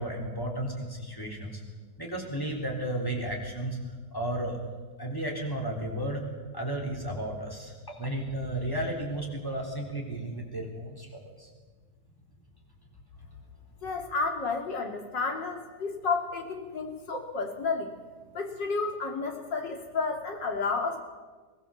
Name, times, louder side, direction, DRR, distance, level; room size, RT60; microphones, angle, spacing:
voice 1, 0.0-1.6 2.0-3.8 4.1-4.6 5.0-6.2 6.5-11.5, right 1 dB, 10° left, 0 dB, 3.8 m, -33 dB
voice 2, 13.8-17.9 18.3-21.0, left 4 dB, 75° left, 3 dB, 3.3 m, -31 dB
22.5 x 18.0 x 7.3 m, 1.4 s
omnidirectional pair, 1.9 m